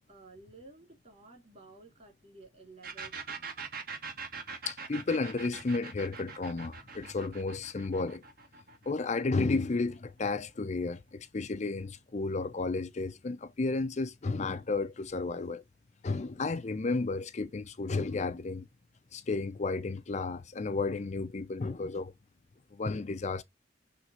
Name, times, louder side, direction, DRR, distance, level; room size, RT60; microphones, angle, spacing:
voice 1, 0.1-3.5, right 3 dB, 40° right, 3.0 m, -54 dB
sound 1, 2.8-10.3, right 5 dB, 55° right, 1.5 m, -43 dB
voice 2, 4.7-8.2 8.9-15.6 16.0-18.6 19.1-22.1 22.7-23.4, left 3 dB, 40° left, 0.5 m, -32 dB
6.4 x 3.5 x 4.3 m
head